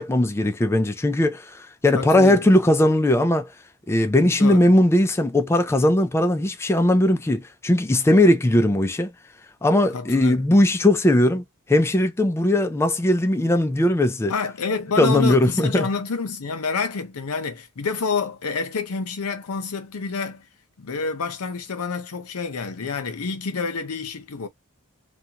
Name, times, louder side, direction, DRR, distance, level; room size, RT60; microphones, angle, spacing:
voice 1, 0.0-3.5 3.9-9.1 9.6-11.4 11.7-14.3 15.0-15.9, left 1 dB, 10° left, 0.3 m, -19 dB
voice 2, 1.9-2.4 4.4-4.7 9.9-10.5 14.3-20.4 20.8-24.5, left 4 dB, 80° left, 0.7 m, -28 dB
2.5 x 2.2 x 2.8 m
head